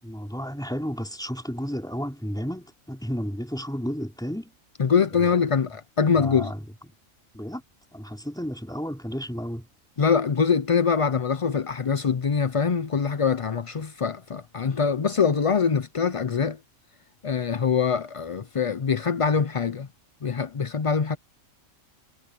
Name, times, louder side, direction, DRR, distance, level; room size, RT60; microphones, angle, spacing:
voice 1, 0.0-4.5 5.1-5.3 6.1-6.9 7.3-7.6 7.9-9.7, equal, 5° left, 3.9 m, -32 dB
voice 2, 4.8-6.5 10.0-16.6 17.2-19.9 20.2-21.2, left 6 dB, 45° left, 0.4 m, -23 dB
omnidirectional pair, 1.4 m